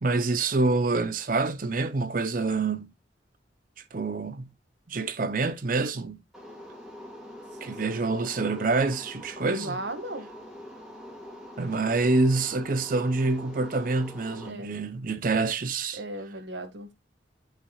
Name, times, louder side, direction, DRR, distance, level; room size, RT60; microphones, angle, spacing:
voice 1, 0.0-2.9 3.9-4.5 4.9-6.2 7.6-9.7 11.6-16.0, right 3 dB, 45° right, 0.7 m, -26 dB
sound 1, 6.3-14.5, left 1 dB, 5° right, 2.4 m, -44 dB
voice 2, 7.5-8.0 9.5-10.3 14.4-14.8 15.9-16.9, right 1 dB, 70° right, 1.8 m, -37 dB
12.5 x 5.8 x 2.3 m
head